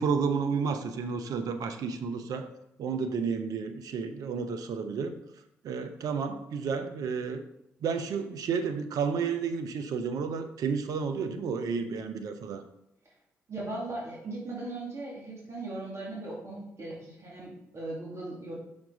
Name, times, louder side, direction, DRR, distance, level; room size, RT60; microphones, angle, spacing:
voice 1, 0.0-2.5 2.8-5.1 5.6-7.4 7.8-12.6, right 5 dB, 65° right, 9 dB, 0.7 m, -31 dB
voice 2, 13.5-18.6, right 2 dB, 45° right, -4 dB, 2.4 m, -38 dB
5.9 x 5.5 x 3.9 m, 0.80 s
hypercardioid pair, 45°, 7 cm